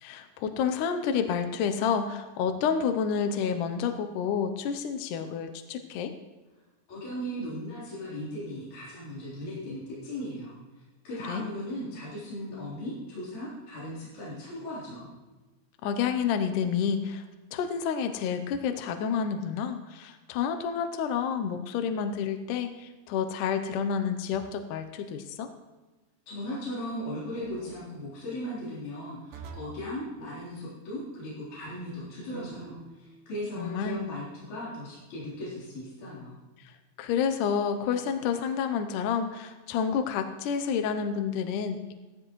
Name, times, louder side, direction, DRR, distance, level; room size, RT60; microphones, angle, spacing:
voice 1, 0.0-6.1 11.3-11.4 15.8-17.3 17.5-25.5 33.6-34.0 36.6-41.9, left 7 dB, 75° left, 7 dB, 2.1 m, -29 dB
voice 2, 6.9-15.1 26.3-36.4, left 1 dB, 55° left, -10 dB, 5.1 m, -37 dB
sound 1, 24.3-24.8 27.3-27.8 29.3-29.9 32.3-33.0, right 4 dB, 80° right, 3.1 m, -46 dB
16.5 x 14.0 x 3.1 m, 1.2 s
omnidirectional pair, 4.2 m